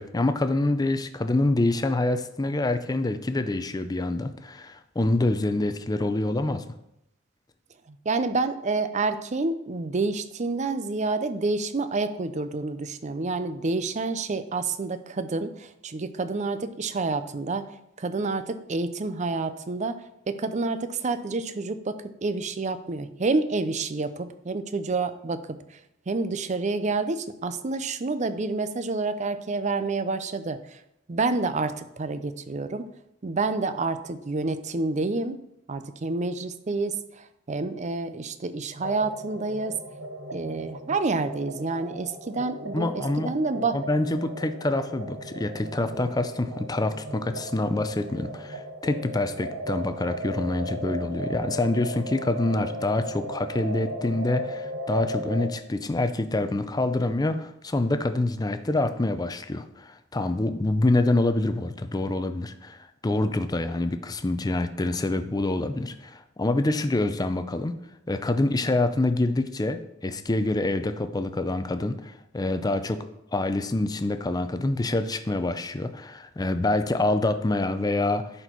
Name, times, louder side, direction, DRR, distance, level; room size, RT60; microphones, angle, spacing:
voice 1, 0.0-6.6 42.7-43.3 43.7-62.8 63.0-67.8 68.1-73.1 73.3-78.3, left 2 dB, 20° left, 10 dB, 0.5 m, -26 dB
voice 2, 7.9-17.7 18.0-25.8 26.1-30.8 31.1-32.8 33.2-35.4 35.7-39.8 40.3-43.8, right 3 dB, 35° right, 11 dB, 0.5 m, -28 dB
sound 1, 38.8-55.5, right 1 dB, 75° right, 1.0 m, -36 dB
11.0 x 4.4 x 4.5 m, 0.82 s
head